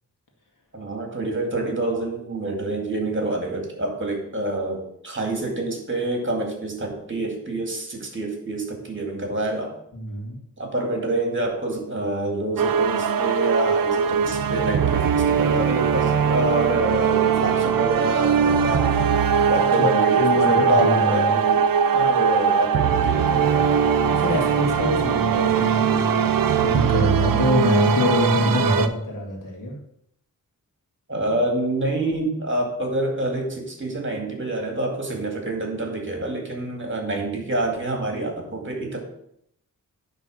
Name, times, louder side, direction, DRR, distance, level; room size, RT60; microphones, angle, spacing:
voice 1, 0.7-9.8 10.6-18.9 19.4-21.7 21.9-23.6 31.1-39.0, right 2 dB, 35° right, 2 dB, 2.2 m, -27 dB
voice 2, 9.9-10.4 19.8-21.3 24.1-26.2 26.6-29.8, left 1 dB, 65° left, 0 dB, 2.1 m, -25 dB
sound 1, 12.6-28.9, right 7 dB, 80° right, 0.6 m, -20 dB
9.7 x 3.8 x 6.3 m, 0.74 s
wide cardioid pair, 100°, 34 cm